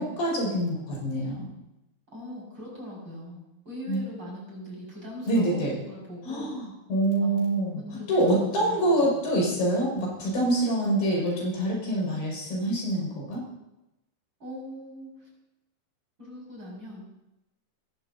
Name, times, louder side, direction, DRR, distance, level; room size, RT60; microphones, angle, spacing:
voice 1, 0.0-1.5 3.9-4.0 5.3-5.7 6.2-7.8 8.1-13.4, right 1 dB, 70° left, -4 dB, 8.2 m, -26 dB
voice 2, 2.1-6.5 7.2-9.2 14.4-15.3 16.2-17.1, equal, 25° right, -4 dB, 6.9 m, -41 dB
28.5 x 15.0 x 2.9 m, 0.94 s
omnidirectional pair, 4.8 m